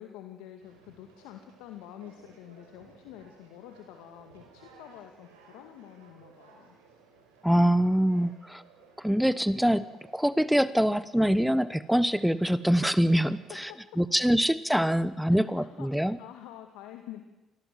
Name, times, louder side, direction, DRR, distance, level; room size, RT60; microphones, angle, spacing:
voice 1, 0.0-6.8 13.5-13.8 15.3-17.3, left 11 dB, 80° left, 5 dB, 2.1 m, -47 dB
Conversation, 0.6-13.7, right 4 dB, 90° right, 6.1 m, -58 dB
voice 2, 7.4-8.6 9.0-13.7 14.0-16.2, equal, ahead, 16 dB, 1.1 m, -24 dB
26.5 x 20.0 x 7.7 m, 0.99 s
hypercardioid pair, 55°, 0 cm